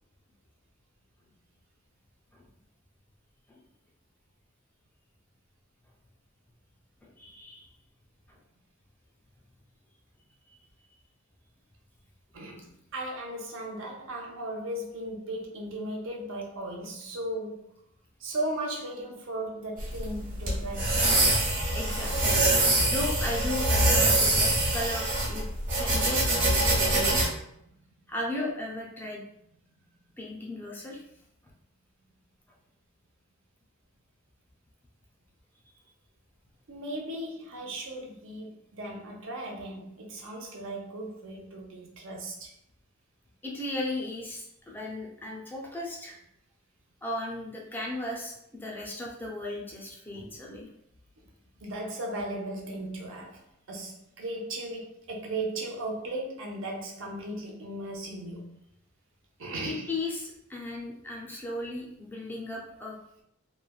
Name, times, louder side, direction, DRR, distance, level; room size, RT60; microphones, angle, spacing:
voice 1, 7.0-7.7 8.3-8.4 21.7-22.4 22.9-25.5 25.8-26.2 26.6-27.3 28.1-29.2 30.2-31.0 38.1-38.2 40.2-40.3 43.4-46.2 47.0-50.7 59.6-63.0, left 2 dB, 10° left, 0.4 m, -36 dB
voice 2, 12.3-17.7 18.2-21.1 36.7-42.5 50.1-50.3 51.6-58.6 59.4-59.9, right 1 dB, 65° right, 0.6 m, -36 dB
sound 1, 19.8-27.2, right 2 dB, 40° right, 1.1 m, -24 dB
3.1 x 2.2 x 2.3 m
head